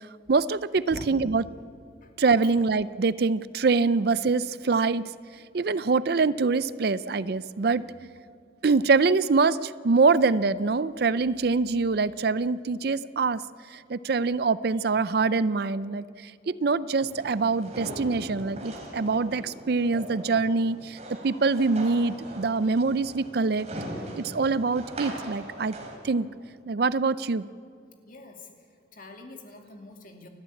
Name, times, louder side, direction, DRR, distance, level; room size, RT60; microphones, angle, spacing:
voice 1, 0.3-1.4 2.2-5.0 5.5-8.1 8.6-13.4 13.9-16.0 16.5-21.0 21.2-23.7 24.2-25.7 26.0-26.3 26.7-27.5, right 4 dB, 55° right, 17 dB, 0.5 m, -24 dB
sound 1, 17.0-26.0, right 1 dB, 35° right, 3.5 m, -40 dB
voice 2, 28.1-28.5 28.9-30.3, left 2 dB, 45° left, 3 dB, 2.6 m, -44 dB
29.5 x 12.5 x 8.5 m, 2.4 s
head